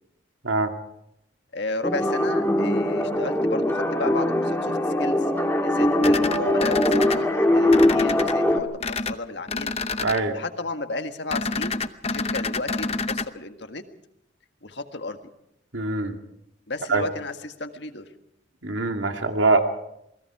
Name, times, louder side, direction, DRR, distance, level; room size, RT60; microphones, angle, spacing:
voice 1, 1.5-5.3 5.6-9.7 10.3-11.8 12.1-13.8 14.6-15.2 16.7-18.1, left 2 dB, 65° left, 7 dB, 1.7 m, -34 dB
sound 1, 1.8-8.6, left 1 dB, 10° left, 1.8 m, -21 dB
sound 2, 6.0-7.2 7.7-8.3 8.8-9.1 9.5-10.2 11.3-13.3, left 3 dB, 30° left, 0.8 m, -28 dB
voice 2, 10.0-10.4 15.7-16.2 16.9-17.0 18.6-19.6, right 3 dB, 80° right, 5 dB, 2.4 m, -23 dB
28.5 x 20.5 x 4.9 m, 0.79 s
head